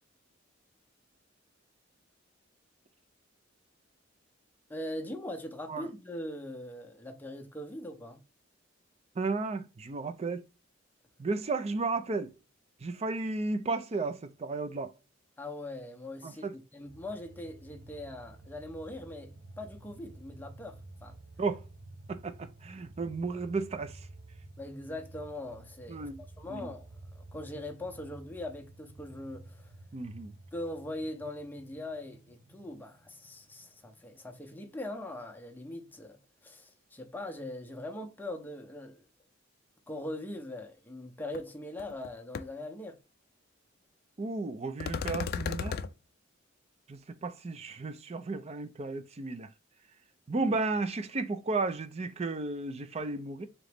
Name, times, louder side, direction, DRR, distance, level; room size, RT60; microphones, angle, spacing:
voice 1, 4.7-8.2 15.4-21.1 24.6-26.1 26.4-26.9 27.2-29.7 30.5-36.2 36.4-39.0 39.9-43.0 50.4-50.5, left 1 dB, 10° left, 0.6 m, -41 dB
voice 2, 9.2-10.4 11.2-12.3 12.8-14.9 16.2-16.5 21.4-21.6 22.1-24.1 25.9-26.2 26.5-26.7 29.9-30.3 44.2-45.8 46.9-49.5 50.3-53.5, right 3 dB, 30° right, 0.4 m, -33 dB
sound 1, 16.8-34.4 34.7-34.8, right 2 dB, 85° right, 0.9 m, -51 dB
sound 2, 41.3-41.4 41.8-42.1 42.3-42.4 44.8-45.9, left 6 dB, 50° left, 0.3 m, -34 dB
3.8 x 3.0 x 3.4 m
head